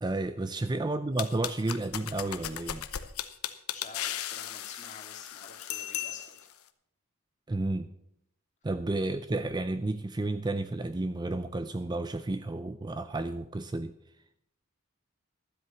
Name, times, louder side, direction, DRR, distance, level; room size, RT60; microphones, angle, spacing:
voice 1, 0.0-2.8 7.5-7.9 8.6-13.9, right 2 dB, 20° right, 11 dB, 0.4 m, -31 dB
sound 1, 1.2-6.5, left 11 dB, 80° left, 0.8 m, -37 dB
voice 2, 3.7-6.4, left 4 dB, 35° left, 3 dB, 2.2 m, -49 dB
12.5 x 8.0 x 6.8 m, 0.74 s
head